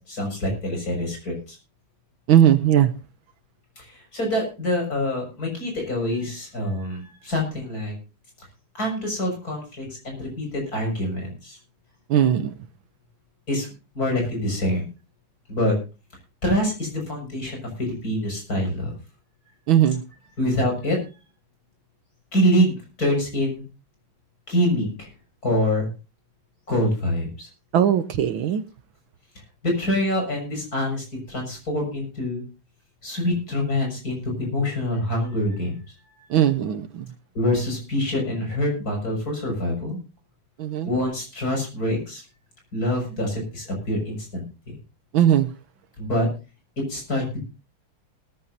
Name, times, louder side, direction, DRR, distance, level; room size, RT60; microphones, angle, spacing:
voice 1, 0.1-1.6 3.8-7.9 8.8-11.6 13.5-13.7 14.0-14.8 15.5-15.8 16.4-19.0 20.4-21.0 22.3-23.6 24.5-25.1 25.4-25.9 26.7-27.5 29.6-32.4 33.0-35.7 37.4-40.0 40.9-42.2 42.7-44.8 46.0-46.3 46.9-47.4, left 1 dB, 40° left, 1 dB, 6.9 m, -25 dB
voice 2, 2.3-2.9 12.1-12.5 19.7-20.0 27.7-28.6 36.3-37.1 40.6-40.9 45.1-45.5, right 10 dB, 70° right, 11 dB, 1.5 m, -19 dB
19.5 x 14.0 x 2.7 m, 0.32 s
omnidirectional pair, 2.4 m